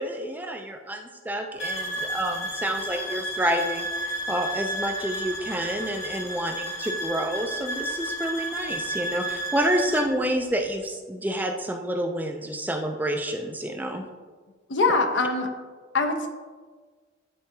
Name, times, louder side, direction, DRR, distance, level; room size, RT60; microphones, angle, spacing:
voice 1, 0.0-14.1, right 1 dB, 10° right, 4 dB, 0.4 m, -29 dB
sound 1, 1.6-10.1, right 1 dB, 90° left, 1.2 m, -32 dB
voice 2, 14.7-15.5 15.9-16.3, left 3 dB, 65° left, 5 dB, 0.7 m, -23 dB
10.5 x 3.8 x 2.7 m, 1.4 s
head